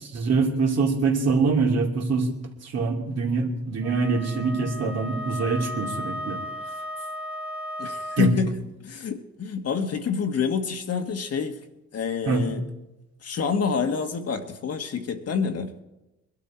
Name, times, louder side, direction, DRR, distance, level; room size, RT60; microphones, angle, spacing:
voice 1, 0.1-2.3 2.6-6.4 8.2-8.3 12.2-12.5, right 4 dB, 60° right, 0 dB, 2.8 m, -24 dB
Wind instrument woodwind instrument, 3.8-8.4, equal, 5° right, 1.4 m, -35 dB
voice 2, 7.8-11.6 11.9-12.6 13.2-15.8, left 6 dB, 55° left, 5 dB, 1.6 m, -27 dB
21.5 x 12.0 x 4.4 m, 0.96 s
cardioid pair, 90°, 30 cm